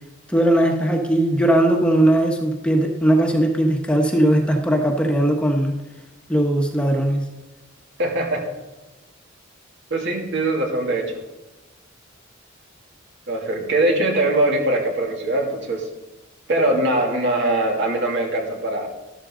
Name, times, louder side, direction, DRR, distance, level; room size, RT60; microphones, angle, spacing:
voice 1, 0.3-5.8 6.3-7.3, right 1 dB, 5° left, 2 dB, 1.2 m, -19 dB
voice 2, 8.0-8.4 9.9-11.1 13.3-15.9 16.5-18.9, right 1 dB, 65° right, 0 dB, 2.6 m, -21 dB
13.0 x 12.5 x 3.8 m, 1.1 s
head